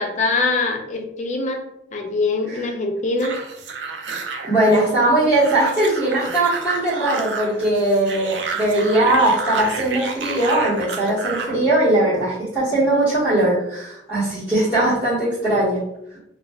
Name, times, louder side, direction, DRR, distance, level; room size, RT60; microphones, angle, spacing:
voice 1, 0.0-1.6 1.9-3.4, left 3 dB, 45° left, 3 dB, 0.4 m, -23 dB
sound 1, 3.2-11.6, right 4 dB, 90° right, 0.4 m, -30 dB
voice 2, 4.4-15.8, right 1 dB, 15° right, -15 dB, 1.1 m, -19 dB
2.4 x 2.2 x 3.3 m, 0.80 s
head